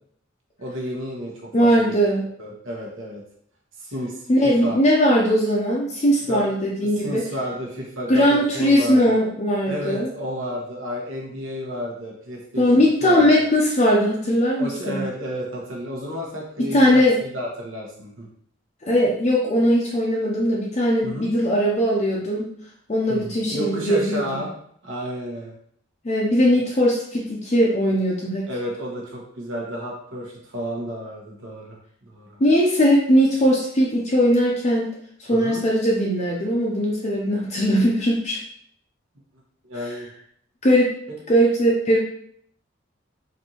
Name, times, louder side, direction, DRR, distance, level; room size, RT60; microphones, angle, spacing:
voice 1, 0.6-2.0 2.4-3.2 3.8-4.8 6.3-6.4 6.8-9.2 9.7-13.3 14.6-18.3 21.0-21.3 23.1-24.5 24.8-25.5 26.6-26.7 28.5-31.8 32.1-32.4 35.3-35.6 39.6-40.1 41.1-41.2, equal, 75° right, -2 dB, 1.1 m, -32 dB
voice 2, 1.5-2.2 4.3-7.2 8.1-10.1 12.6-15.0 16.7-17.2 18.9-22.5 22.9-24.4 26.0-28.5 32.4-34.9 35.2-38.4 40.6-40.9 41.3-42.0, equal, 35° left, -3 dB, 0.5 m, -19 dB
4.3 x 2.6 x 2.9 m, 0.66 s
head